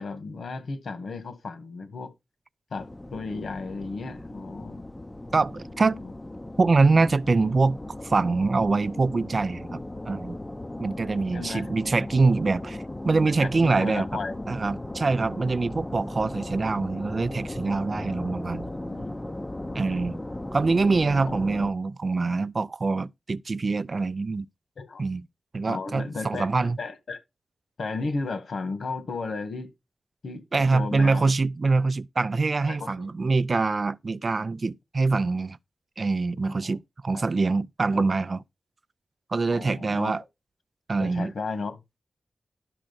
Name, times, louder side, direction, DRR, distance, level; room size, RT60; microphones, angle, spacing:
voice 1, 0.0-2.1 2.7-4.9 6.0-6.1 11.3-11.7 13.4-14.4 18.7-19.3 21.2-21.3 24.8-25.0 25.6-27.2 27.8-29.7 30.2-30.4 30.7-31.3 32.7-33.1 36.4-36.8 37.1-37.2 37.9-38.0 39.5-40.1 41.0-42.0, left 3 dB, 75° left, 2.1 m, -34 dB
sound 1, 2.8-21.7, left 1 dB, 15° left, 0.6 m, -37 dB
voice 2, 5.3-6.0 6.6-7.8 8.0-10.4 10.8-12.8 13.0-14.1 14.5-18.7 19.7-20.2 20.5-24.5 25.0-25.2 25.5-26.8 30.5-35.6 36.0-38.4 39.3-40.2 40.9-41.3, right 3 dB, 40° right, 0.4 m, -24 dB
12.0 x 6.2 x 4.3 m
wide cardioid pair, 130°, 0 cm